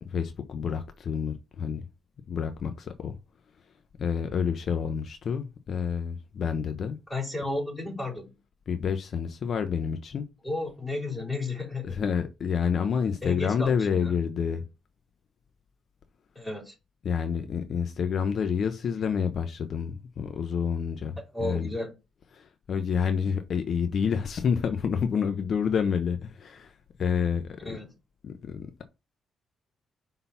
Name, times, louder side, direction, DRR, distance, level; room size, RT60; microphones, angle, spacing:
voice 1, 0.0-1.9 2.3-3.2 4.0-7.0 8.7-10.2 11.8-14.6 17.0-21.7 22.3-26.7 27.0-27.8 28.2-28.8, left 6 dB, 60° left, 0.8 m, -28 dB
voice 2, 7.1-8.4 10.4-12.0 13.2-14.1 16.3-16.7 21.3-21.9 27.6-27.9, left 2 dB, 5° left, 3.5 m, -33 dB
5.6 x 3.8 x 5.8 m
cardioid pair, 75°, 0 cm